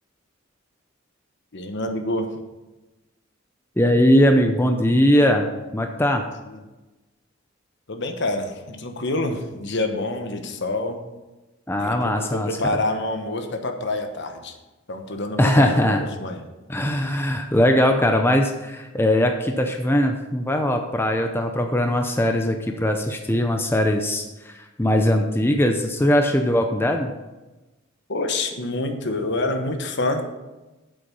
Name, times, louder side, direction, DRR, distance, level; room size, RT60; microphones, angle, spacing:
voice 1, 1.5-2.3 6.4-6.6 7.9-11.0 11.8-14.6 14.9-16.5 28.1-30.2, left 2 dB, 60° left, 5 dB, 1.2 m, -27 dB
voice 2, 3.8-5.5 5.7-6.2 11.7-12.5 15.4-16.0 16.7-27.1, left 1 dB, 10° left, 4 dB, 0.6 m, -20 dB
8.3 x 7.8 x 5.5 m, 1.1 s
head